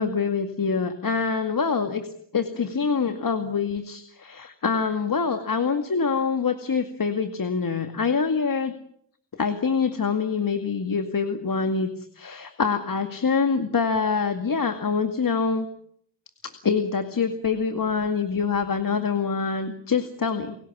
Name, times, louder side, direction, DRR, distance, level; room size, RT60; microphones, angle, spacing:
voice 1, 0.0-2.1 2.3-8.7 9.3-15.7 16.4-20.6, left 5 dB, 45° left, 7 dB, 2.2 m, -25 dB
30.0 x 17.0 x 7.3 m, 0.66 s
cardioid pair, 65°, 47 cm